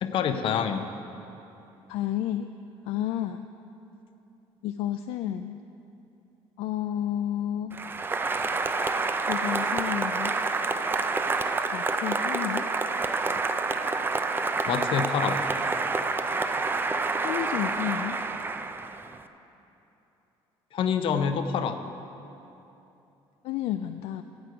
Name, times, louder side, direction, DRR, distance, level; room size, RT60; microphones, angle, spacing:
voice 1, 0.0-0.9 14.7-15.4 20.7-21.8, left 7 dB, 60° left, 8 dB, 0.7 m, -26 dB
voice 2, 1.9-2.5 2.9-3.5 4.6-5.6 6.6-7.8 9.3-10.4 11.7-12.7 17.1-18.2 23.4-24.2, left 11 dB, 75° left, 8 dB, 0.4 m, -31 dB
Applause, 7.7-19.2, right 3 dB, 20° right, 0.4 m, -28 dB
12.5 x 7.8 x 5.0 m, 2.9 s
cardioid pair, 110°, 10 cm